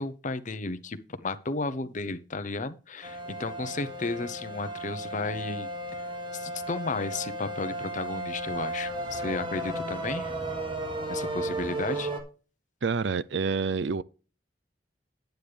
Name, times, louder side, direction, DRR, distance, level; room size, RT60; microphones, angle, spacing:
voice 1, 0.0-5.7 6.0-6.1 6.3-10.3 11.1-12.1, left 3 dB, 45° left, 0.9 m, -33 dB
sound 1, 3.0-12.2, right 1 dB, 30° right, 1.9 m, -34 dB
voice 2, 12.8-14.0, right 5 dB, 70° right, 0.5 m, -28 dB
9.9 x 9.2 x 3.4 m
head